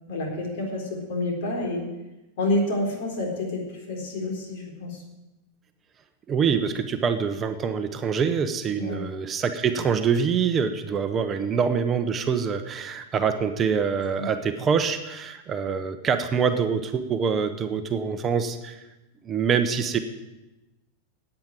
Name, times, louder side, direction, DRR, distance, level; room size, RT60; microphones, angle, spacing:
voice 1, 0.1-1.8 2.4-5.0 8.8-9.0 14.2-14.3, left 2 dB, 60° left, 1 dB, 4.1 m, -28 dB
voice 2, 6.3-18.8 19.2-20.0, right 6 dB, 20° right, 7 dB, 0.8 m, -25 dB
9.7 x 8.9 x 9.0 m, 1.0 s
supercardioid pair, 155°, 0 cm